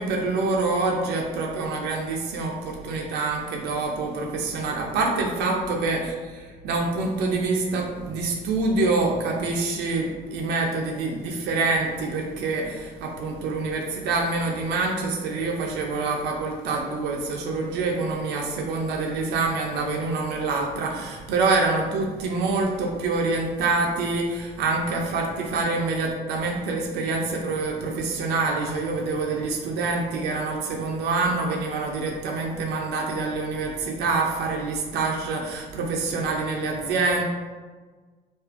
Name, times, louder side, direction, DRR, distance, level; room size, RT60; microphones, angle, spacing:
voice 1, 0.0-37.2, right 3 dB, 80° right, 0 dB, 0.4 m, -26 dB
2.4 x 2.4 x 2.4 m, 1.4 s
cardioid pair, 110°, 17 cm